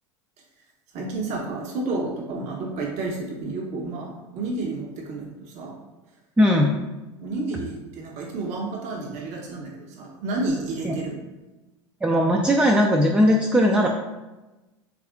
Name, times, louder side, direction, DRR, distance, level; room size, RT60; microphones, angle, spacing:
voice 1, 0.9-5.8 7.2-11.1, right 2 dB, 50° right, -1 dB, 0.7 m, -30 dB
voice 2, 6.4-6.8 10.8-11.0 12.0-13.9, equal, 10° right, 1 dB, 0.3 m, -19 dB
3.4 x 2.5 x 3.4 m, 1.1 s
hypercardioid pair, 85°, 15 cm